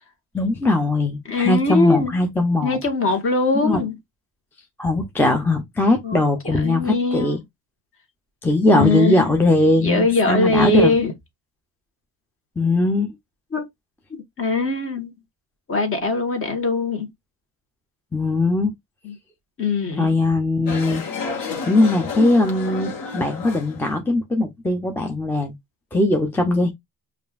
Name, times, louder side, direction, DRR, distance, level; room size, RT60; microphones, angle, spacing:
voice 1, 0.3-2.8 3.6-3.8 4.8-7.4 8.4-10.9 12.6-13.1 18.1-18.7 20.0-21.0 21.7-25.6 25.9-26.7, left 2 dB, 5° left, 0.5 m, -20 dB
voice 2, 1.3-2.1 2.6-3.9 6.0-6.2 6.6-7.3 8.7-9.3 9.8-11.1 13.5-13.6 14.1-15.1 15.7-17.1 19.0-19.1 19.6-20.1, left 3 dB, 35° left, 1.3 m, -21 dB
sound 1, 20.7-23.9, left 4 dB, 60° left, 1.3 m, -30 dB
5.1 x 2.5 x 2.3 m
cardioid pair, 125°, 39 cm